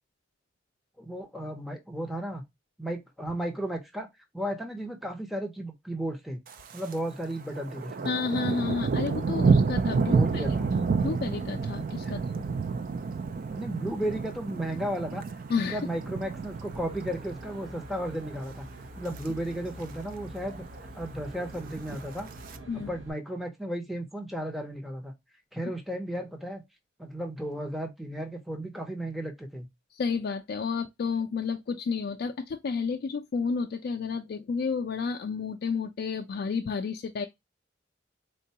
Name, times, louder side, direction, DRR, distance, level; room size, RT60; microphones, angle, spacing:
voice 1, 1.0-2.4 2.8-4.1 4.3-6.4 6.7-8.1 10.0-10.7 12.1-12.2 13.5-15.2 15.7-18.7 19.0-20.6 20.9-22.3 22.7-25.1 25.5-26.6 27.0-29.7, right 1 dB, ahead, 0.6 m, -34 dB
Thunder, 6.5-7.0 7.3-17.6 18.0-18.4 18.8-19.3 19.5-19.6 19.8-19.9 20.3-20.9 21.6-22.6, right 4 dB, 45° right, 0.3 m, -29 dB
voice 2, 8.0-10.4 11.0-12.4 15.5-15.8 22.7-22.9 29.9-37.3, left 5 dB, 55° left, 0.3 m, -31 dB
Aircraft, 16.4-23.1, right 1 dB, 85° right, 0.7 m, -45 dB
3.7 x 2.2 x 2.7 m
head